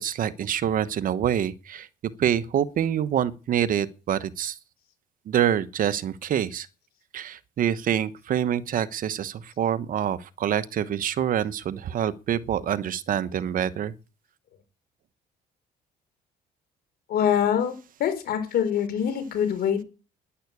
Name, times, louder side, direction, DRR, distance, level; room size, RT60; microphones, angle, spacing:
voice 1, 0.0-1.9 2.2-4.5 5.3-6.7 7.1-13.9, right 10 dB, 55° right, 1.1 m, -26 dB
voice 2, 17.1-19.8, left 8 dB, 65° left, 4.2 m, -24 dB
11.5 x 10.5 x 8.4 m
cardioid pair, 110°, 17 cm